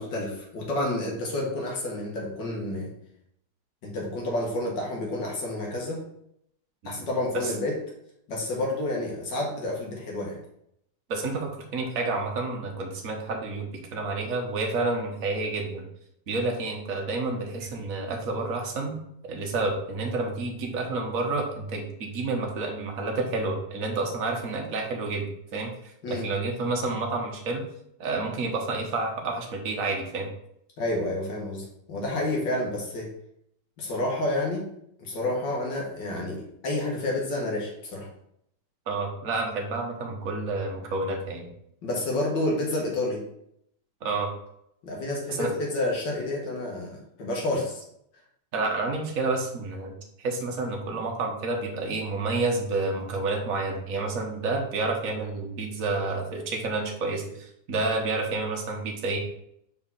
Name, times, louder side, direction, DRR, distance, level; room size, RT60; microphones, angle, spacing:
voice 1, 0.0-2.9 3.8-6.0 6.9-7.8 8.3-10.4 26.0-26.3 30.8-33.1 33.8-34.7 35.0-38.1 41.8-43.3 44.8-47.8, left 1 dB, 75° left, -1 dB, 2.1 m, -29 dB
voice 2, 11.1-15.8 16.3-19.0 19.3-25.7 26.1-27.6 28.0-30.3 38.9-41.5 44.0-44.3 45.3-45.5 48.5-59.2, right 3 dB, 50° right, 1 dB, 1.6 m, -29 dB
4.9 x 4.8 x 5.6 m, 0.72 s
omnidirectional pair, 1.9 m